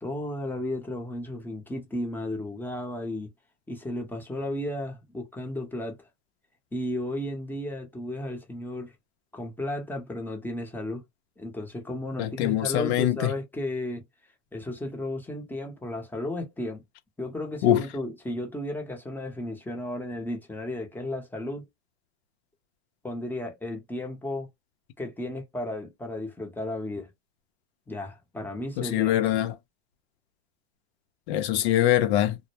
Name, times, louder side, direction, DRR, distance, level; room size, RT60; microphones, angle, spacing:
voice 1, 0.0-3.3 3.7-6.0 6.7-8.9 9.3-11.0 11.4-14.0 14.5-16.8 17.2-21.7 23.0-24.5 25.0-27.1 27.9-29.2, left 1 dB, 5° left, 0.7 m, -34 dB
voice 2, 12.2-13.3 17.6-17.8 28.8-29.5 31.3-32.4, left 12 dB, 75° left, 0.7 m, -23 dB
2.1 x 2.0 x 2.9 m
supercardioid pair, 125°, 33 cm